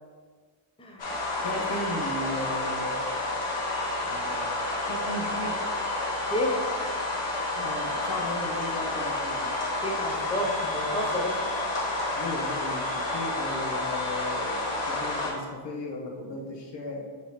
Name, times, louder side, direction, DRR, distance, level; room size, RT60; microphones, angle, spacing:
voice 1, 0.8-1.1 6.3-6.6 9.8-11.4, left 1 dB, 10° left, 0 dB, 0.5 m, -30 dB
sound 1, 1.0-15.3, left 2 dB, 90° left, 1.4 m, -30 dB
voice 2, 1.4-3.0 4.0-5.6 7.6-9.5 12.1-17.0, left 1 dB, 60° left, 0 dB, 0.8 m, -36 dB
5.2 x 2.8 x 3.1 m, 1.5 s
wide cardioid pair, 130°, 49 cm